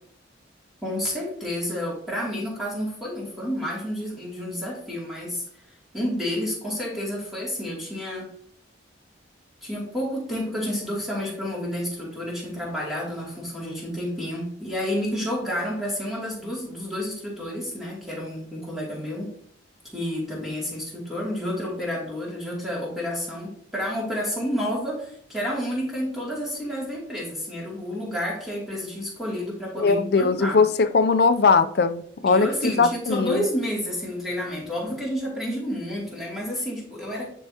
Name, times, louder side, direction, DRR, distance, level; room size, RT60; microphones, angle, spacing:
voice 1, 0.8-5.4 5.9-8.3 9.6-19.3 19.9-30.6 32.2-37.3, equal, ahead, -5 dB, 2.6 m, -30 dB
voice 2, 29.8-33.4, left 4 dB, 55° left, 11 dB, 0.4 m, -20 dB
10.0 x 4.6 x 2.8 m, 0.65 s
head